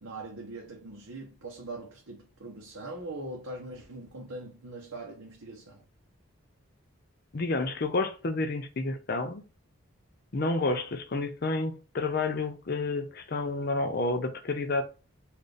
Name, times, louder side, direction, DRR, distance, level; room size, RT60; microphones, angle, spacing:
voice 1, 0.0-5.8, right 2 dB, 90° right, 0.9 m, -41 dB
voice 2, 7.3-9.4 10.3-14.8, left 3 dB, 45° left, 0.5 m, -30 dB
4.3 x 2.5 x 3.3 m
head